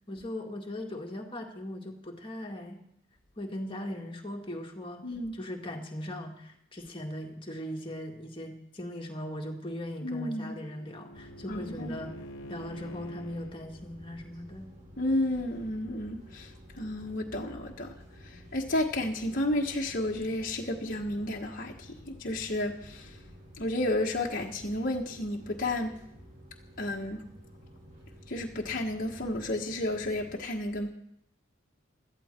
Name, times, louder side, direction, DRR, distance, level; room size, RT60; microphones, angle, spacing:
voice 1, 0.1-2.8 3.4-12.1 12.5-14.7, left 1 dB, 25° left, 1 dB, 1.9 m, -39 dB
voice 2, 5.0-5.3 10.0-10.6 11.5-12.0 15.0-17.9 18.2-23.2 23.6-25.9 26.8-27.2 28.3-30.9, left 1 dB, 45° left, -1 dB, 1.3 m, -32 dB
Bowed string instrument, 9.7-13.6, equal, 85° left, 0.9 m, -47 dB
sound 1, 11.1-30.3, equal, 40° right, 6.5 m, -52 dB
17.0 x 12.5 x 4.4 m, 0.76 s
head